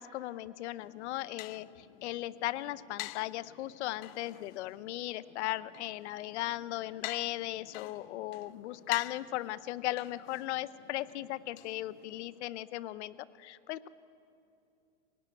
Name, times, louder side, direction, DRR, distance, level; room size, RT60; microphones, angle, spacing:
voice 1, 0.0-13.9, left 15 dB, 60° left, 16 dB, 0.8 m, -37 dB
sound 1, 0.8-12.4, left 20 dB, 40° left, 0.5 m, -48 dB
26.0 x 18.5 x 9.1 m, 2.8 s
supercardioid pair, 145°, 37 cm